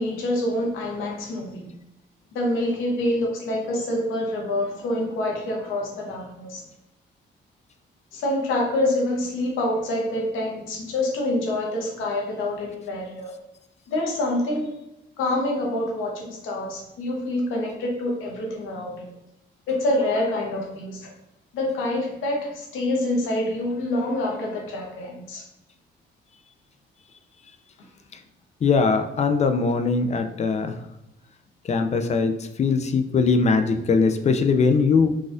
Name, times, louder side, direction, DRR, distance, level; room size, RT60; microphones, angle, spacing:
voice 1, 0.0-1.7 2.3-6.6 8.1-13.3 13.9-14.7 15.2-19.1 19.7-21.1 21.5-25.4, left 1 dB, 90° left, -1 dB, 0.9 m, -26 dB
voice 2, 28.6-30.8 31.7-35.1, left 4 dB, 35° left, 8 dB, 0.4 m, -21 dB
4.0 x 2.3 x 2.5 m, 0.90 s
cardioid pair, 90°, 20 cm